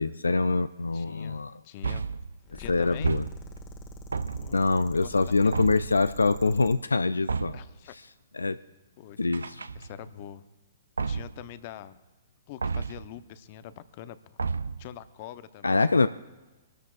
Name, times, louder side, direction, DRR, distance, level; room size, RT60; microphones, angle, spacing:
voice 1, 0.0-1.6 2.5-3.2 4.5-7.6 8.3-8.6 9.2-9.6 15.6-16.1, left 3 dB, 90° left, 13 dB, 0.3 m, -25 dB
voice 2, 0.9-2.0 2.6-3.1 4.4-4.7 4.9-5.7 7.5-7.9 9.0-9.2 9.7-10.4 11.1-12.0 12.5-14.4 14.8-15.8, left 11 dB, 45° left, 13 dB, 0.8 m, -44 dB
sound 1, 1.8-2.4 3.0-3.7 4.1-4.7 5.5-6.0 7.3-7.8 9.3-10.1 11.0-11.5 12.6-13.1 14.4-14.9, right 5 dB, 85° right, 0.5 m, -31 dB
sound 2, 2.4-6.8, equal, 20° left, 1.6 m, -44 dB
25.0 x 13.0 x 2.5 m, 1.2 s
hypercardioid pair, 125°, 0 cm